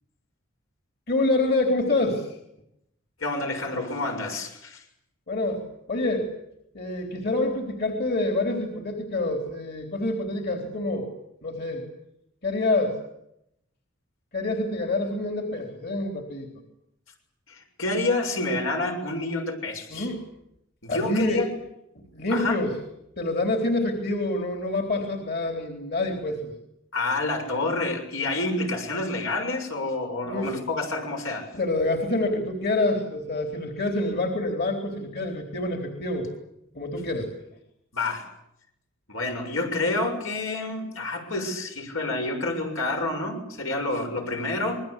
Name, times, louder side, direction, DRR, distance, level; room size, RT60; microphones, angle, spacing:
voice 1, 1.1-2.3 5.3-6.3 6.7-11.1 11.4-11.9 12.4-13.0 14.3-16.5 19.9-20.2 20.9-21.4 22.1-22.7 23.2-26.5 30.3-30.5 31.5-36.3 36.7-37.3, left 2 dB, 50° left, 3 dB, 3.9 m, -27 dB
voice 2, 3.2-4.8 17.5-20.1 20.8-21.5 22.3-22.6 26.9-31.5 37.9-38.3 39.1-44.8, left 2 dB, 80° left, 3 dB, 7.0 m, -28 dB
27.0 x 21.5 x 8.4 m, 0.80 s
head